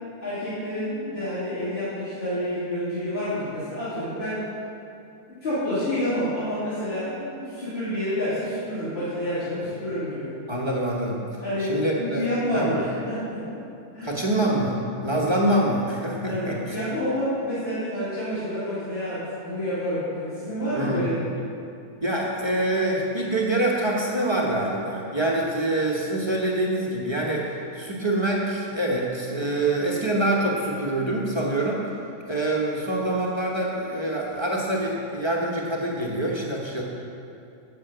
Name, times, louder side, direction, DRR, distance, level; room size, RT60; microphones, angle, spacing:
voice 1, 0.2-4.4 5.3-10.3 11.4-13.6 13.9-14.1 16.3-21.2, equal, 45° left, -13 dB, 2.7 m, -28 dB
voice 2, 10.5-11.2 11.6-12.3 12.5-12.8 14.0-16.7 20.7-21.1 22.0-31.9 32.2-36.8, right 1 dB, 20° right, -4 dB, 0.9 m, -25 dB
6.9 x 6.4 x 7.8 m, 2.7 s
omnidirectional pair, 1.6 m